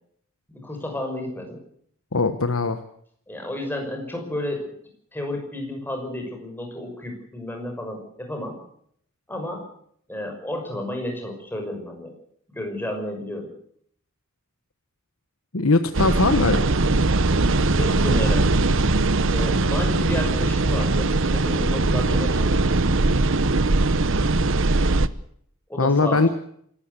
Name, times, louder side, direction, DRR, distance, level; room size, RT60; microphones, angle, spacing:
voice 1, 0.5-1.6 3.3-4.7 5.1-8.6 9.3-9.6 10.1-12.1 12.5-13.5 17.8-18.7 19.3-22.7 25.7-26.3, left 1 dB, 10° left, 3 dB, 5.9 m, -31 dB
voice 2, 2.1-2.8 15.5-16.7 25.8-26.3, left 3 dB, 80° left, 9 dB, 1.2 m, -20 dB
sound 1, 15.9-25.1, right 2 dB, 60° right, 0.9 m, -20 dB
26.5 x 13.5 x 8.3 m, 0.67 s
head